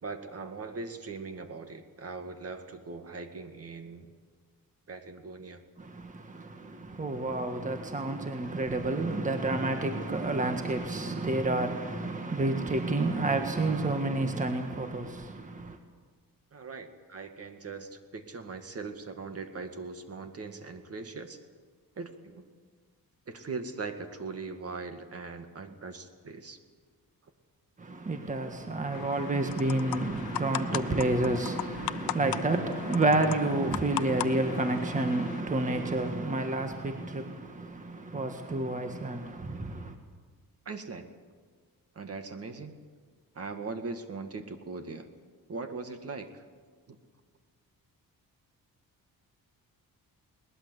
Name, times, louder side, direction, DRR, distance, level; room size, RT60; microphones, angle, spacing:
voice 1, 0.0-4.1 4.9-5.6 16.5-21.4 22.0-22.5 23.3-26.6 40.7-41.1 42.0-42.8 43.3-45.1 45.5-46.4 46.9-47.0, right 4 dB, 40° right, 2.0 m, -40 dB
voice 2, 5.8-15.8 27.8-40.0, right 2 dB, 20° right, 1.6 m, -30 dB
sound 1, 28.9-35.4, left 13 dB, 80° left, 0.8 m, -38 dB
21.5 x 19.5 x 8.1 m
cardioid pair, 115°, 36 cm